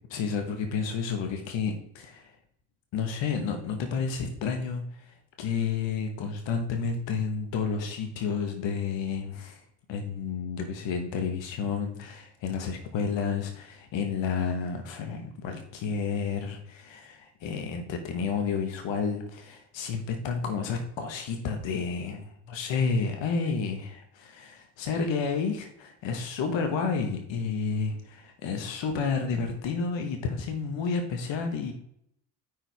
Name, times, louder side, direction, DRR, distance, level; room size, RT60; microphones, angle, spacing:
voice 1, 0.1-2.4 2.9-9.6 9.9-31.7, left 5 dB, 70° left, 5 dB, 1.4 m, -31 dB
8.8 x 4.9 x 3.4 m, 0.70 s
supercardioid pair, 60°, 47 cm